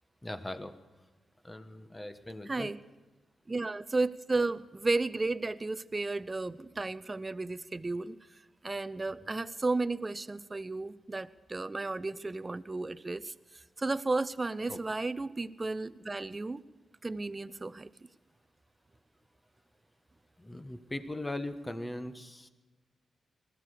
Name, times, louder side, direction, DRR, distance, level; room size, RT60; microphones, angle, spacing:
voice 1, 0.2-0.7 1.4-2.7 14.7-14.8 20.4-22.5, left 1 dB, 15° left, 9 dB, 1.3 m, -39 dB
voice 2, 2.5-2.8 3.5-8.2 8.6-13.3 13.8-16.6 17.0-17.9, right 3 dB, 25° right, 13 dB, 0.6 m, -33 dB
20.0 x 14.5 x 5.0 m, 1.2 s
cardioid pair, 75°, 0 cm